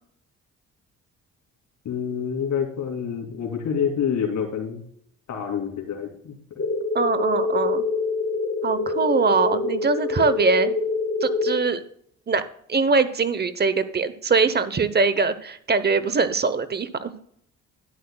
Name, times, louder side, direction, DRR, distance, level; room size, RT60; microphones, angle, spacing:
voice 1, 1.8-4.8 5.3-6.4, left 7 dB, 70° left, 3 dB, 2.6 m, -27 dB
sound 1, 6.6-11.6, left 3 dB, 40° left, 2.0 m, -25 dB
voice 2, 6.9-7.8 8.6-10.7 11.2-11.8 12.3-12.4 12.7-17.1, right 4 dB, 35° right, 13 dB, 0.8 m, -22 dB
12.5 x 10.5 x 2.2 m, 0.66 s
cardioid pair, 90°, 30 cm